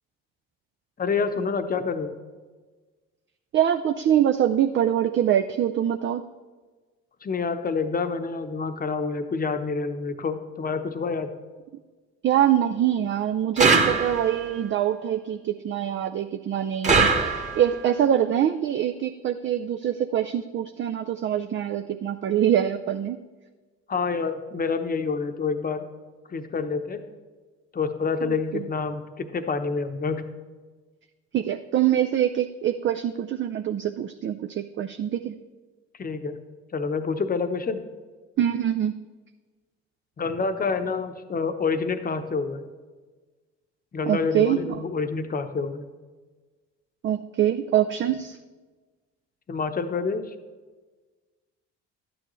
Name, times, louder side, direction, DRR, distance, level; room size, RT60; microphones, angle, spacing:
voice 1, 1.0-2.2 7.2-11.3 23.9-25.8 26.3-27.0 27.7-30.2 36.0-36.4 36.7-37.8 40.2-42.7 43.9-45.8 49.5-50.3, left 4 dB, 30° left, 8 dB, 0.9 m, -27 dB
voice 2, 3.5-6.2 12.2-23.2 28.2-28.6 31.3-35.4 38.4-38.9 44.1-44.6 47.0-48.4, right 10 dB, 40° right, 7 dB, 0.5 m, -24 dB
sound 1, 13.6-14.5 16.8-17.8, right 4 dB, 25° right, 1.4 m, -21 dB
12.0 x 9.2 x 3.1 m, 1.3 s
supercardioid pair, 70°, 31 cm